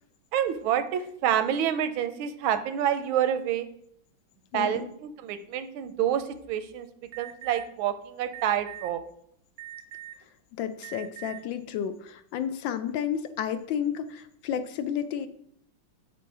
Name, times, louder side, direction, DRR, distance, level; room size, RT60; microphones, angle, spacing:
voice 1, 0.3-3.7 4.5-6.9 7.2-9.0, right 9 dB, 80° right, 10 dB, 1.4 m, -28 dB
voice 2, 4.5-4.9 10.6-15.3, left 9 dB, 75° left, 10 dB, 1.3 m, -31 dB
Alarm, 7.1-7.6 8.3-8.9 9.6-10.2 10.8-11.4, right 14 dB, 65° right, 0.9 m, -42 dB
6.8 x 6.1 x 4.7 m, 0.69 s
omnidirectional pair, 2.3 m